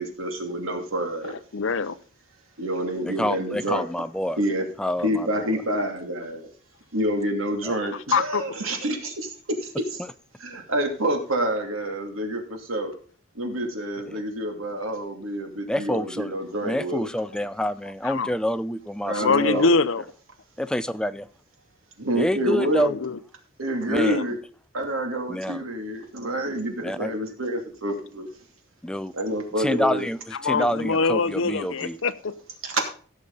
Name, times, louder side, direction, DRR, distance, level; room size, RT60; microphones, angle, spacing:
voice 1, 0.0-1.4 2.6-3.9 4.4-4.7 5.0-6.5 6.9-9.3 9.9-10.0 10.4-12.9 13.4-17.1 19.0-19.7 22.0-22.9 23.6-24.4 24.7-28.3 29.1-30.1 32.6-32.9, right 1 dB, 90° right, 2.6 m, -27 dB
voice 2, 1.2-2.0 8.1-8.5 18.0-18.3 19.1-20.0 22.7-23.2 24.0-24.2 30.4-32.3, left 4 dB, 70° left, 0.7 m, -24 dB
voice 3, 3.0-4.4 4.8-5.5 7.6-7.7 14.1-14.2 15.7-16.3 16.6-19.2 19.5-19.7 20.6-21.3 22.2-22.9 23.9-24.2 25.3-25.6 26.8-27.1 28.8-29.1 29.6-32.0, equal, 5° left, 0.4 m, -27 dB
16.5 x 6.5 x 3.9 m
head